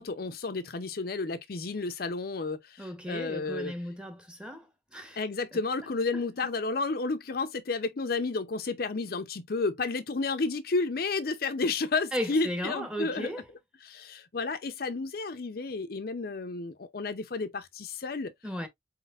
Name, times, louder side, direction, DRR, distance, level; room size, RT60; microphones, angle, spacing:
voice 1, 0.0-3.7 5.2-13.3 13.8-18.3, left 3 dB, 55° left, 0.6 m, -31 dB
voice 2, 2.8-5.2 12.1-13.4 18.4-18.7, equal, 5° right, 1.1 m, -35 dB
4.3 x 4.1 x 2.4 m
head